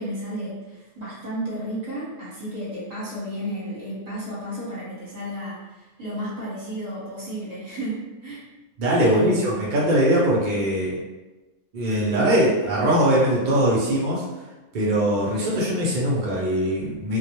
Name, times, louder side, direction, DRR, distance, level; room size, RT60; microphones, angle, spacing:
voice 1, 0.0-8.4 9.0-9.6, equal, 35° right, -8 dB, 0.9 m, -32 dB
voice 2, 8.8-11.0 11.7-14.2 14.7-17.2, right 1 dB, 75° right, -5 dB, 0.4 m, -21 dB
2.3 x 2.1 x 2.8 m, 1.1 s
omnidirectional pair, 1.5 m